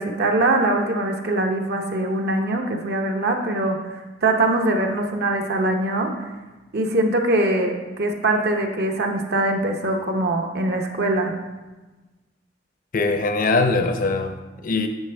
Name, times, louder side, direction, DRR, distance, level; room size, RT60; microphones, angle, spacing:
voice 1, 0.0-6.1 6.7-11.4, right 2 dB, 55° right, 3 dB, 0.9 m, -22 dB
voice 2, 12.9-14.9, left 3 dB, 45° left, 7 dB, 0.6 m, -22 dB
8.9 x 5.9 x 3.4 m, 1.2 s
head